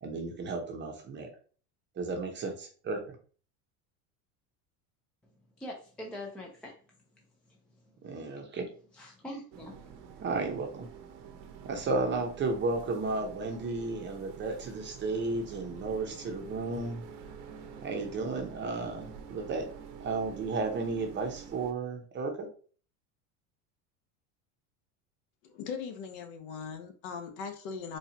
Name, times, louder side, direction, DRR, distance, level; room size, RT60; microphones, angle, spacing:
voice 1, 0.0-1.3 2.0-3.2 8.0-8.7 10.2-10.9 11.6-17.0 17.8-22.5, right 3 dB, 25° right, 3 dB, 0.7 m, -33 dB
voice 2, 5.6-6.7 7.9-8.0 8.9-9.8, left 1 dB, 5° left, -1 dB, 0.3 m, -43 dB
sound 1, 9.5-21.7, right 7 dB, 55° right, 0.8 m, -47 dB
voice 3, 25.5-28.0, left 6 dB, 65° left, 6 dB, 0.9 m, -39 dB
4.3 x 2.4 x 2.7 m, 0.41 s
supercardioid pair, 125°, 45 cm